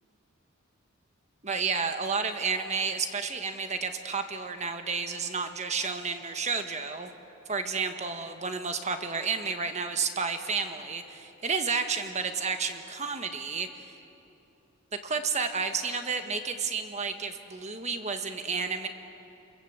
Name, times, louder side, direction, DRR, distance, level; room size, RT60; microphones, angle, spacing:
voice 1, 1.4-7.1 7.5-14.0 14.9-18.9, right 5 dB, 30° right, 7 dB, 1.4 m, -31 dB
29.5 x 22.0 x 8.1 m, 2.8 s
head